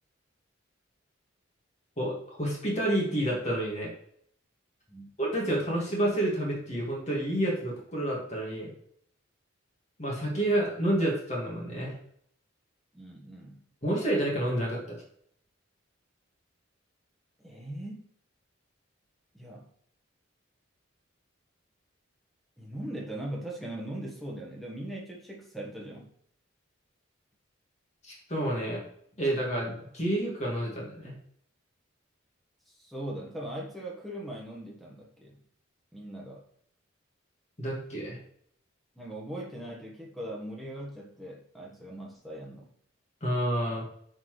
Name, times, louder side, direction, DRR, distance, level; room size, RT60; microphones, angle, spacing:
voice 1, 2.0-3.9 5.2-8.7 10.0-11.9 13.8-15.0 28.0-28.8 29.2-31.1 37.6-38.2 43.2-43.8, right 1 dB, 35° left, -3 dB, 1.9 m, -29 dB
voice 2, 12.9-13.6 17.4-18.0 19.3-19.7 22.6-26.1 32.7-35.4 35.9-36.4 38.9-42.7, right 1 dB, ahead, -2 dB, 1.3 m, -40 dB
9.5 x 4.0 x 3.2 m, 0.66 s
head